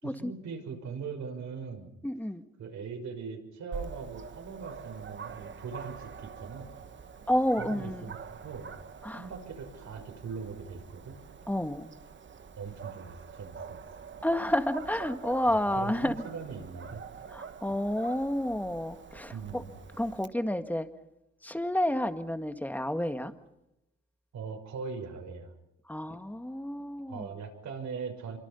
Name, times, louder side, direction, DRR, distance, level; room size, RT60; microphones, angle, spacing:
voice 1, 0.0-1.9 2.6-6.7 7.6-8.2 8.4-8.7 9.2-11.2 12.6-13.8 15.5-17.0 19.3-19.7 24.3-25.5 27.1-28.4, right 5 dB, 65° right, 6.1 m, -40 dB
voice 2, 2.0-2.4 7.3-8.1 9.0-9.2 11.5-11.9 14.2-16.3 17.3-19.6 20.0-20.9 21.4-23.3 25.9-27.3, left 1 dB, 5° left, 1.8 m, -30 dB
Dog, 3.7-20.3, right 6 dB, 40° right, 1.3 m, -45 dB
26.0 x 24.5 x 5.7 m
cardioid pair, 90°, 30 cm